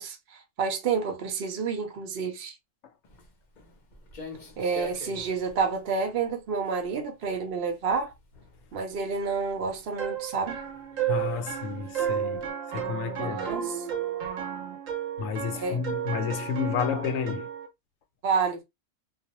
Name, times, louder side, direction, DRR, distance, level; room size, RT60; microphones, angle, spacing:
voice 1, 0.0-2.5 4.6-8.1 8.7-10.6 13.0-13.7 15.5-15.8 18.2-18.6, right 5 dB, 55° right, 0.8 m, -29 dB
Walk footsteps, 3.0-12.5, left 5 dB, 45° left, 0.7 m, -48 dB
sound 1, 10.0-17.7, right 9 dB, 80° right, 1.1 m, -32 dB
voice 2, 11.1-13.5 15.2-17.5, left 7 dB, 80° left, 1.0 m, -31 dB
2.4 x 2.1 x 2.8 m
omnidirectional pair, 1.4 m